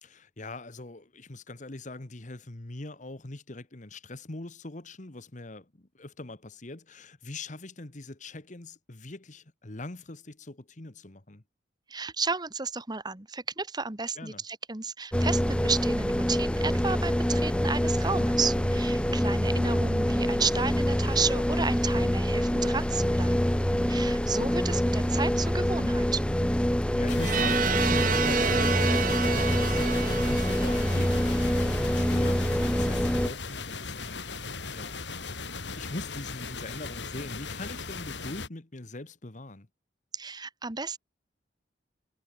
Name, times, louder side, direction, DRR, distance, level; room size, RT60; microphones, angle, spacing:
voice 1, 0.0-11.4 14.2-14.4 18.6-18.7 26.9-35.0 35.7-39.7, left 2 dB, 45° left, 1.4 m, -42 dB
voice 2, 11.9-23.5 23.9-26.2 40.1-41.0, right 4 dB, 25° right, 1.4 m, -32 dB
sound 1, 15.1-33.3, equal, 5° left, 0.9 m, -26 dB
sound 2, 27.1-38.5, left 4 dB, 85° left, 3.9 m, -38 dB
sound 3, 27.2-32.0, right 7 dB, 50° right, 1.0 m, -30 dB
head